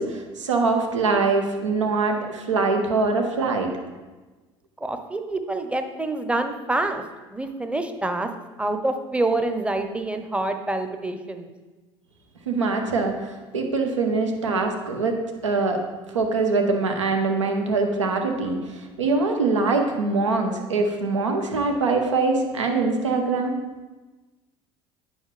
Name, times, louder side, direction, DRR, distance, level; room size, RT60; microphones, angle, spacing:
voice 1, 0.0-3.7 12.5-13.2 13.5-15.2 15.4-15.8 16.1-23.6, right 3 dB, 90° right, 4 dB, 0.9 m, -23 dB
voice 2, 4.8-7.0 7.3-8.3 8.6-11.5, right 2 dB, 5° right, 7 dB, 0.8 m, -26 dB
8.9 x 5.6 x 3.3 m, 1.2 s
hypercardioid pair, 65°, 15 cm